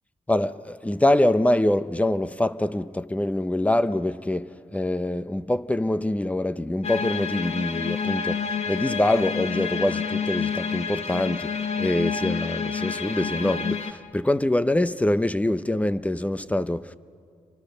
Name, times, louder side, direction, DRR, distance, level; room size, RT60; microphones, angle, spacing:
voice 1, 0.3-11.5 11.8-16.9, left 1 dB, 10° left, 0.7 m, -24 dB
sound 1, 6.8-13.9, left 6 dB, 55° left, 1.3 m, -29 dB
28.0 x 24.0 x 6.7 m
cardioid pair, 95°, 13 cm